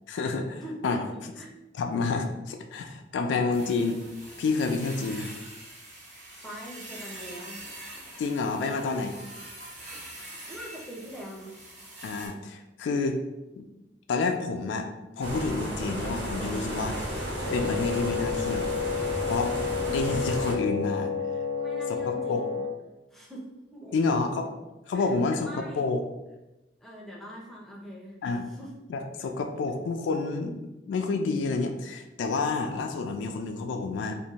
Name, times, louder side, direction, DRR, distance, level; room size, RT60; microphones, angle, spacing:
voice 1, 0.1-1.0 1.7-4.0 4.4-5.4 8.2-9.2 12.0-13.2 13.6-13.7 14.1-14.9 15.2-17.2 17.5-18.7 19.2-19.5 19.9-21.1 21.9-22.4 23.9-24.5 24.9-26.0 28.2-28.5 28.9-34.2, left 4 dB, 90° left, 4 dB, 0.3 m, -29 dB
voice 2, 0.6-1.5 6.4-7.6 10.5-11.5 21.5-22.6 23.1-24.2 24.9-25.9 26.8-28.2 28.5-28.8 29.2-29.3, equal, ahead, -4 dB, 0.4 m, -43 dB
sound 1, 3.5-12.3, right 1 dB, 40° right, 0.7 m, -44 dB
sound 2, 15.2-20.5, equal, 75° right, 0.7 m, -33 dB
Wind instrument woodwind instrument, 17.4-22.7, left 6 dB, 60° right, 1.2 m, -31 dB
2.5 x 2.1 x 2.8 m, 1.0 s
head